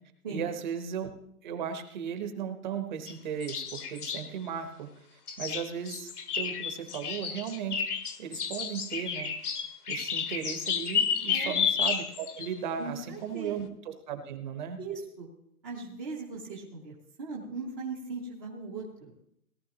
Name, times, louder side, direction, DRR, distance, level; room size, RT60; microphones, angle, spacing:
voice 1, 0.3-1.1 1.4-4.9 5.4-7.8 8.2-9.3 9.9-14.8, right 7 dB, 30° right, 7 dB, 1.0 m, -36 dB
sound 1, 3.1-3.2 3.4-4.3 5.3-12.5, left 7 dB, 80° left, 1.5 m, -31 dB
voice 2, 12.8-13.5 14.8-15.3 15.6-19.1, right 4 dB, 15° right, -4 dB, 0.6 m, -39 dB
17.5 x 12.0 x 2.9 m, 0.71 s
hypercardioid pair, 155°, 45 cm